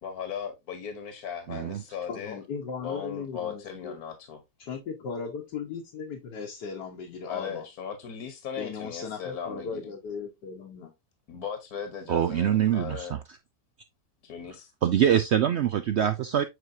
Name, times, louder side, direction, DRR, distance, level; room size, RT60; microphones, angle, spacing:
voice 1, 0.0-2.4 2.8-4.4 7.2-9.8 11.3-13.2 14.2-14.7, left 7 dB, 65° left, 1.6 m, -37 dB
voice 2, 1.5-1.8 12.1-13.2 14.8-16.4, right 10 dB, 90° right, 0.5 m, -24 dB
voice 3, 2.1-3.9 4.6-7.7 8.6-10.9, left 5 dB, 85° left, 1.7 m, -37 dB
7.9 x 4.6 x 2.7 m
omnidirectional pair, 1.8 m